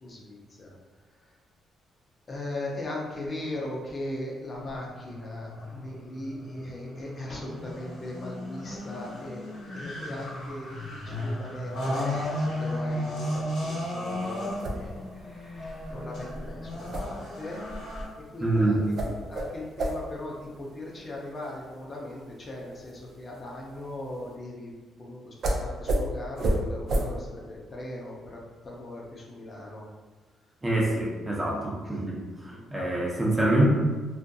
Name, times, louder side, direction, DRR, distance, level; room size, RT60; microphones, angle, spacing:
voice 1, 0.0-0.8 1.2-1.3 2.3-9.5 9.7-17.6 18.3-18.8 19.0-24.7 25.0-29.9 31.8-32.1 32.5-32.7, left 1 dB, 35° left, -2 dB, 0.5 m, -39 dB
sound 1, 4.5-18.0, left 1 dB, 85° left, 1.0 m, -35 dB
sound 2, 14.2-24.3 25.4-25.6 25.9-26.0 26.4-26.6 26.9-27.0, right 1 dB, 60° right, 0.4 m, -33 dB
voice 2, 18.4-18.8 30.6-32.2 32.7-33.7, right 1 dB, 20° right, -4 dB, 0.6 m, -25 dB
2.5 x 2.5 x 2.3 m, 1.3 s
cardioid pair, 90°, 0 cm